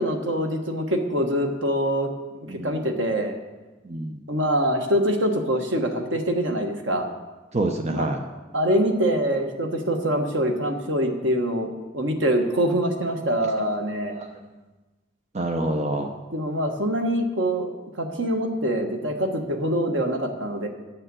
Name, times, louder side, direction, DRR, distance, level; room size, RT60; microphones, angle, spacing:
voice 1, 0.0-2.1 2.4-3.4 4.3-7.1 7.9-8.1 8.5-11.7 11.9-14.1 16.3-20.7, equal, 85° right, 4 dB, 1.4 m, -24 dB
voice 2, 2.5-2.8 3.8-4.2 7.5-8.2 14.1-14.3 15.3-16.1, right 2 dB, 35° right, 4 dB, 0.7 m, -27 dB
10.0 x 6.7 x 7.7 m, 1.2 s
head